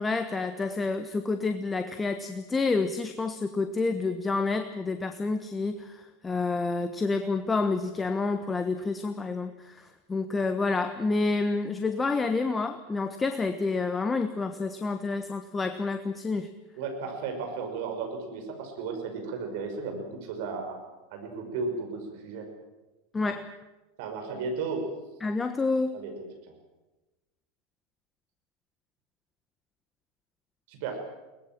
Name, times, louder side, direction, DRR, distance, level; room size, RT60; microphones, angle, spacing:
voice 1, 0.0-16.5 23.1-23.5 25.2-26.0, left 3 dB, 15° left, 9 dB, 1.2 m, -29 dB
voice 2, 16.7-20.8 21.1-22.5 24.0-24.8 25.9-26.1 26.5-26.6 30.7-31.0, right 4 dB, 60° right, 4 dB, 5.7 m, -34 dB
22.5 x 19.5 x 7.6 m, 1.1 s
hypercardioid pair, 90°, 0 cm